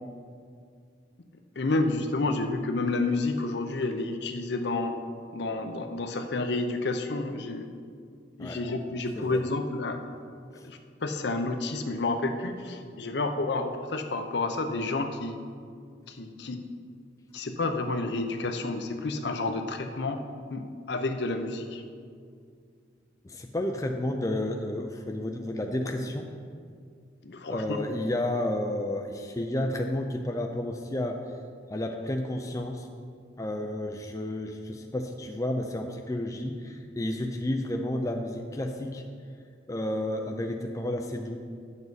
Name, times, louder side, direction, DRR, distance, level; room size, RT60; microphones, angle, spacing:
voice 1, 1.6-4.9 5.3-7.7 8.4-10.0 10.6-15.4 16.1-16.6 17.3-20.2 20.5-20.6 20.9-21.8 27.2-27.8, left 2 dB, 60° left, 6 dB, 0.6 m, -30 dB
voice 2, 23.2-26.3 27.5-31.2 31.7-32.9 33.4-39.0 39.7-41.4, left 1 dB, 15° left, 3 dB, 0.4 m, -31 dB
9.5 x 7.1 x 4.1 m, 2.2 s
head